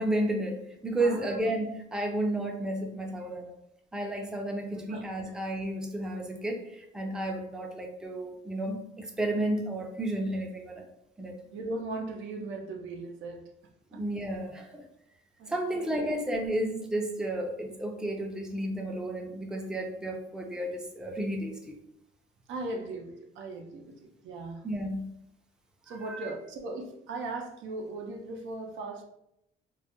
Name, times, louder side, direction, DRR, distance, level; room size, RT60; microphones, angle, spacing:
voice 1, 0.0-3.5 3.9-10.9 11.2-11.3 13.9-14.8 15.5-21.7 24.6-25.1 25.9-26.3, right 1 dB, 5° right, 1 dB, 0.4 m, -32 dB
voice 2, 1.0-1.4 4.7-5.0 11.5-13.4 15.4-15.9 22.5-24.6 25.9-29.0, right 2 dB, 80° right, 2 dB, 0.5 m, -38 dB
2.2 x 2.0 x 2.8 m, 0.80 s
cardioid pair, 90°, 20 cm